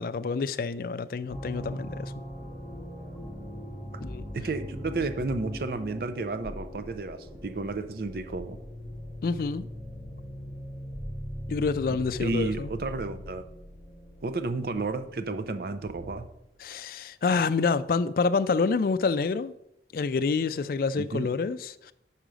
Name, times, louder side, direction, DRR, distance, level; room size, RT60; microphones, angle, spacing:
voice 1, 0.0-2.1 4.0-4.2 9.2-9.7 11.5-12.7 16.6-19.5 19.9-21.9, left 4 dB, 55° left, 0.3 m, -27 dB
sound 1, 1.3-16.3, equal, 10° right, 2.6 m, -40 dB
voice 2, 4.3-8.6 11.9-13.4 14.2-16.3 20.9-21.3, right 3 dB, 55° right, 0.5 m, -32 dB
5.6 x 5.1 x 6.2 m
head